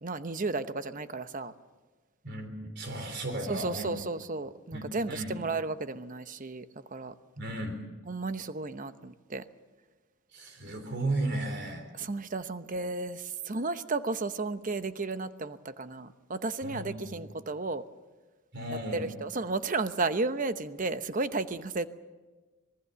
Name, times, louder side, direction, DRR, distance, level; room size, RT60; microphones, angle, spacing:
voice 1, 0.0-1.5 3.4-6.6 6.9-7.1 8.1-9.4 11.9-17.8 18.7-21.9, right 3 dB, 40° right, 11 dB, 0.9 m, -33 dB
voice 2, 2.2-3.9 4.7-5.4 7.4-7.8 10.3-11.8 16.6-17.2 18.5-19.1, right 1 dB, 55° right, 5 dB, 3.6 m, -35 dB
26.5 x 20.0 x 6.9 m, 1.3 s
head